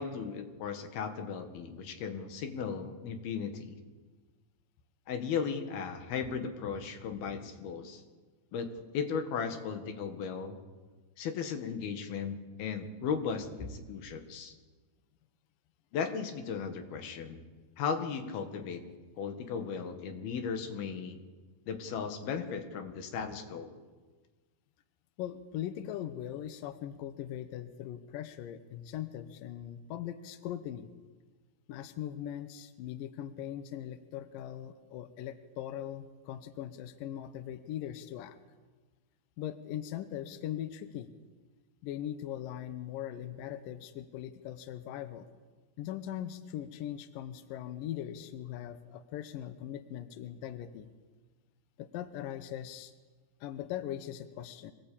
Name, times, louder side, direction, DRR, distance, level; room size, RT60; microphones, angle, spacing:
voice 1, 0.0-3.8 5.1-8.0 8.5-8.7 8.9-10.6 11.2-14.6 15.9-17.4 17.8-18.8 19.2-21.2 21.7-23.7, left 6 dB, 90° left, 6 dB, 3.8 m, -36 dB
voice 2, 25.2-30.9 31.7-38.4 39.4-41.1 41.8-45.3 45.8-50.9 51.8-52.9 53.4-54.7, left 11 dB, 75° left, 11 dB, 2.5 m, -40 dB
25.0 x 18.0 x 8.7 m, 1.4 s
omnidirectional pair, 4.2 m